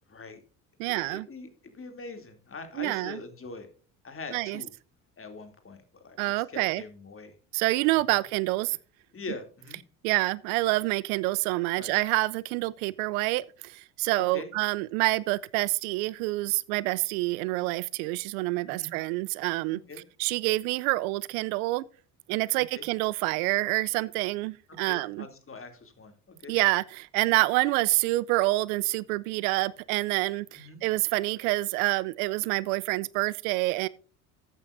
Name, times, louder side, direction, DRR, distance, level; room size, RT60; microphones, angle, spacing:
voice 1, 0.1-0.4 0.8-3.7 4.0-4.7 5.2-7.3 8.1-8.2 9.1-9.8 11.8-12.0 14.2-14.5 18.7-18.9 19.7-20.0 22.7-22.9 24.8-26.6 30.5-30.8, left 3 dB, 25° left, 2.7 m, -43 dB
voice 2, 0.8-1.3 2.8-3.2 4.3-4.6 6.2-6.8 7.5-8.8 10.0-19.8 20.2-21.8 22.3-25.2 26.5-33.9, right 21 dB, 70° right, 0.5 m, -27 dB
14.0 x 8.8 x 2.6 m
hypercardioid pair, 65°, 46 cm